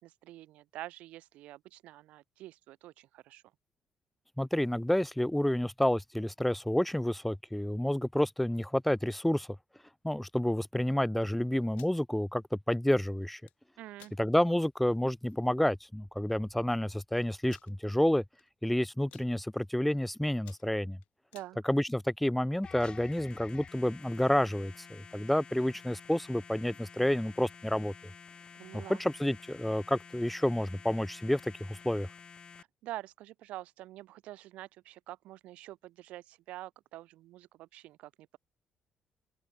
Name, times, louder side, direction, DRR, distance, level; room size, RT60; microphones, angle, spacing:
voice 1, 0.0-3.4 13.8-14.1 21.3-21.6 28.5-29.0 32.8-38.4, right 16 dB, 80° right, 0.4 m, -46 dB
voice 2, 4.4-9.5 10.0-13.4 14.2-18.2 18.6-21.0 21.6-27.9 28.7-32.1, left 1 dB, 5° left, 0.3 m, -29 dB
sound 1, 11.6-12.0 13.2-13.6 14.0-14.2 14.7-14.8 15.1-15.4 16.2-16.3 16.4-16.5 17.5-17.7 18.4-18.7 18.9-19.3 19.9-20.0 20.3-21.5, left 18 dB, 80° left, 0.6 m, -57 dB
sound 2, 22.6-32.6, left 6 dB, 45° left, 1.0 m, -51 dB
open air
supercardioid pair, 60°, 2 cm